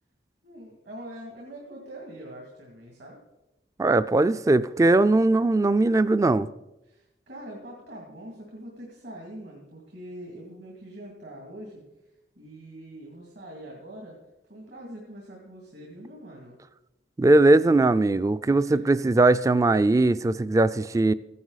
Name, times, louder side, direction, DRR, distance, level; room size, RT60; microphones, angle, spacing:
voice 1, 0.4-3.2 6.8-11.8 12.4-14.2 14.5-16.6 18.5-19.0, right 1 dB, 70° right, 2.4 m, -43 dB
voice 2, 3.8-6.5 17.2-21.1, right 2 dB, 20° right, 0.3 m, -20 dB
14.5 x 11.0 x 4.0 m
head